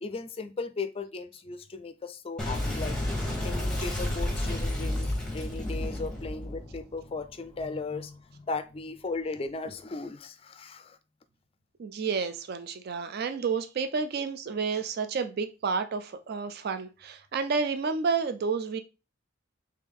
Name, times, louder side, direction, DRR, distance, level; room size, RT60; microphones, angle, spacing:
voice 1, 0.0-3.0 3.4-11.0, left 3 dB, 30° left, 0.4 m, -37 dB
Boom, 2.4-7.6, left 1 dB, 5° left, 1.1 m, -31 dB
voice 2, 11.8-18.8, right 5 dB, 55° right, 0.4 m, -30 dB
3.5 x 3.3 x 3.6 m
head